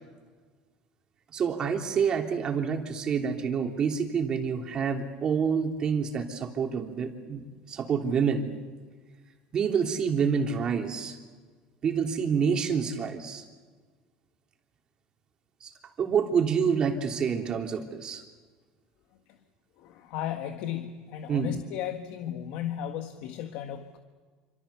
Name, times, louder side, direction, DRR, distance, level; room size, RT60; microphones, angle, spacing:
voice 1, 1.3-8.5 9.5-11.2 11.8-13.4 15.6-15.7 16.0-18.2 21.3-21.5, right 6 dB, 30° right, 3 dB, 3.3 m, -27 dB
voice 2, 19.8-24.0, left 10 dB, 65° left, 6 dB, 1.6 m, -35 dB
27.5 x 26.5 x 7.0 m, 1.5 s
cardioid pair, 145°, 3 cm